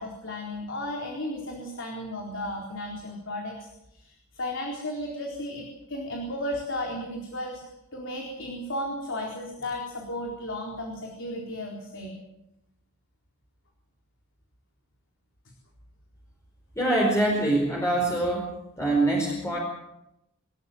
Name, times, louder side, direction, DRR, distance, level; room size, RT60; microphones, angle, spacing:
voice 1, 0.0-7.6 7.9-12.2, left 1 dB, 60° left, 1 dB, 4.2 m, -34 dB
voice 2, 16.8-18.5 18.8-19.6, right 1 dB, 15° left, -2 dB, 4.7 m, -24 dB
26.5 x 13.5 x 9.3 m, 0.88 s
head